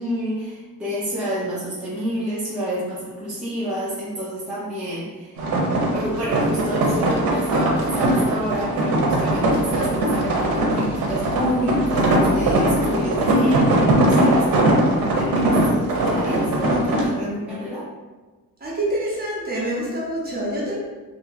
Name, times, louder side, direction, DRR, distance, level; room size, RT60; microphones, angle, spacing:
voice 1, 0.0-5.4 5.9-17.9, equal, 5° right, -10 dB, 0.7 m, -29 dB
sound 1, 5.4-17.1, right 1 dB, 70° right, 0.7 m, -20 dB
voice 2, 18.6-20.8, right 1 dB, 25° right, -5 dB, 1.0 m, -26 dB
2.8 x 2.7 x 2.5 m, 1.2 s
cardioid pair, 100°, 36 cm